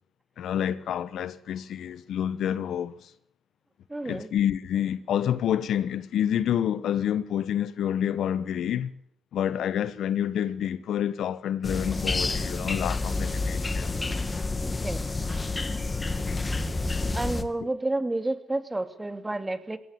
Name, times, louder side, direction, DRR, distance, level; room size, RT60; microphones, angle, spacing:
voice 1, 0.4-3.1 4.0-9.0 9.3-14.1 17.6-17.7, left 10 dB, 70° left, 1.2 m, -28 dB
voice 2, 3.9-4.3 14.8-15.0 17.1-19.8, right 2 dB, 15° right, 2.7 m, -30 dB
sound 1, 11.6-17.4, left 3 dB, 25° left, 2.3 m, -29 dB
21.0 x 17.5 x 8.1 m
cardioid pair, 80°, 0 cm